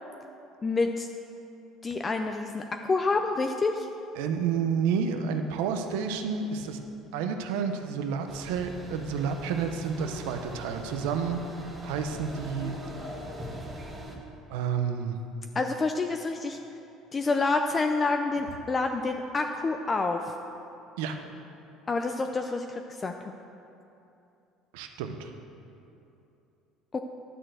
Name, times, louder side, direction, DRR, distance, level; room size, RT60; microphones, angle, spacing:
voice 1, 0.6-1.1 1.8-3.9 15.5-16.6 17.1-20.3 21.9-23.3 26.9-27.0, left 3 dB, 25° left, 5 dB, 0.4 m, -28 dB
voice 2, 4.2-6.8 7.1-11.4 11.8-12.8 14.5-15.2 21.0-21.2 24.7-25.3, right 6 dB, 90° right, 6 dB, 0.7 m, -30 dB
sound 1, 8.3-14.2, right 1 dB, 20° right, 1.5 m, -41 dB
11.0 x 4.3 x 7.8 m, 2.8 s
cardioid pair, 110°, 0 cm